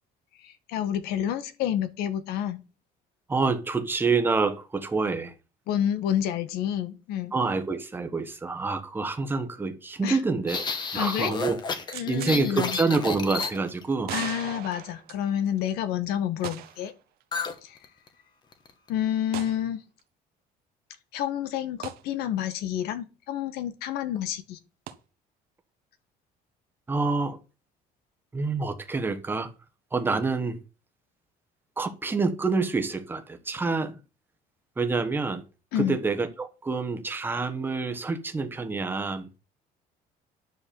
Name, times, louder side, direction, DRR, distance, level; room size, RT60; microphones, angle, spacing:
voice 1, 0.4-2.6 5.7-7.3 10.0-10.2 10.9-11.3 11.9-12.8 14.1-16.9 17.6-17.8 18.9-19.8 21.1-24.6 35.7-36.0, left 10 dB, 80° left, 1.6 m, -29 dB
voice 2, 3.3-5.3 7.3-10.7 10.9-11.6 12.1-14.1 26.9-27.4 28.3-29.5 29.9-30.6 31.8-34.0 34.8-35.4 35.7-39.4, right 4 dB, 15° right, 1.3 m, -27 dB
sound 1, 10.5-13.9 17.3-17.6 17.8-18.1 18.5-18.9, left 5 dB, 25° left, 1.4 m, -31 dB
sound 2, 11.9-12.4 12.7-12.8 13.4-13.5 14.0-15.6 16.4-16.9 17.2-17.3 19.3-19.6 21.8-22.0 24.9-25.0, right 13 dB, 70° right, 1.4 m, -38 dB
10.5 x 6.1 x 7.0 m
cardioid pair, 175°, 16 cm